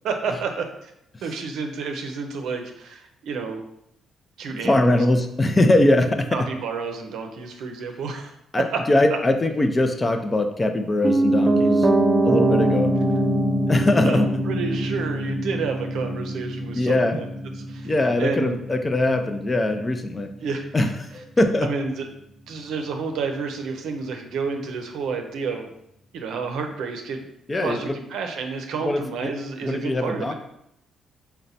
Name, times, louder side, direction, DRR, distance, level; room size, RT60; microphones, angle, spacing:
voice 1, 0.0-0.9 1.2-3.6 4.4-5.0 6.3-8.8 9.1-9.2 14.0-17.2 17.6-18.6 20.4-20.9 21.6-22.1 22.5-25.7 26.1-27.3 27.6-30.3, right 5 dB, 80° right, 5 dB, 0.5 m, -30 dB
voice 2, 4.5-6.3 8.5-11.9 12.2-12.9 13.7-14.3 16.7-17.2 17.8-20.3 20.7-21.7 27.5-28.0 28.8-29.3 29.6-30.3, left 1 dB, 25° left, 6 dB, 0.4 m, -21 dB
Piano, 11.0-21.0 21.3-21.4, right 1 dB, 25° right, 0.5 m, -24 dB
4.0 x 2.2 x 4.0 m, 0.78 s
cardioid pair, 90°, 0 cm